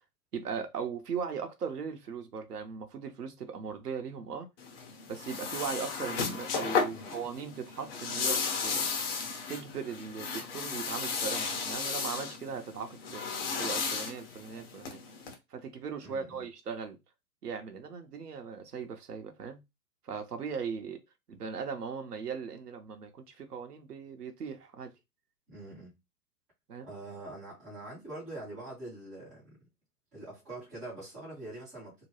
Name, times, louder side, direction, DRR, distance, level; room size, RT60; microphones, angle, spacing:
voice 1, 0.3-4.5 5.1-8.9 9.5-15.0 15.5-17.0 17.4-19.6 20.0-21.0 21.3-24.9 26.7-26.9, right 6 dB, 85° right, 0.8 m, -38 dB
sound 1, 4.6-15.3, left 5 dB, 40° left, 0.8 m, -34 dB
voice 2, 16.0-16.4 25.5-25.9 26.8-29.6 30.1-32.1, right 2 dB, ahead, 0.3 m, -44 dB
2.9 x 2.2 x 2.9 m
figure-of-eight pair, 115°, 45 cm